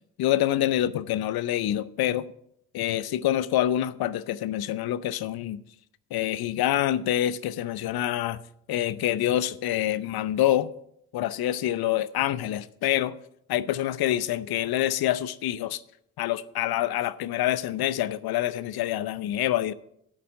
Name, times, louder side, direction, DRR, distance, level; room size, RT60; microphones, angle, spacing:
voice 1, 0.2-2.3 2.7-5.6 6.1-8.4 8.7-10.7 11.1-13.1 13.5-15.8 16.2-19.7, left 12 dB, 70° left, 0.7 m, -26 dB
8.9 x 7.9 x 7.5 m
hypercardioid pair, 40°, 38 cm